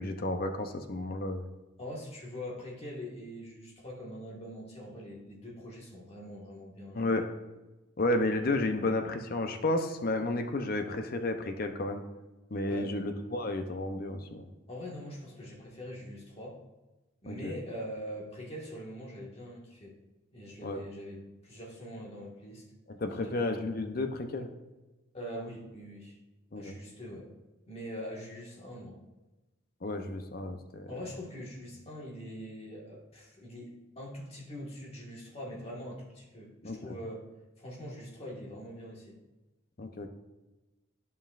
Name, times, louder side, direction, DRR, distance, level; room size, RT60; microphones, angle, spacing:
voice 1, 0.0-1.5 6.9-7.3 8.0-12.0 12.5-14.5 17.3-17.5 20.6-20.8 22.9-24.5 26.5-26.7 29.8-30.9 36.6-37.0 39.8-40.1, left 2 dB, 45° left, 6 dB, 0.6 m, -32 dB
voice 2, 1.8-7.1 12.7-12.9 14.7-16.6 17.2-19.9 20.3-22.6 23.2-23.5 25.1-26.2 26.5-27.3 27.7-29.0 30.9-37.3 37.6-39.2, equal, 30° left, -3 dB, 1.6 m, -43 dB
11.5 x 5.4 x 2.5 m, 1.1 s
head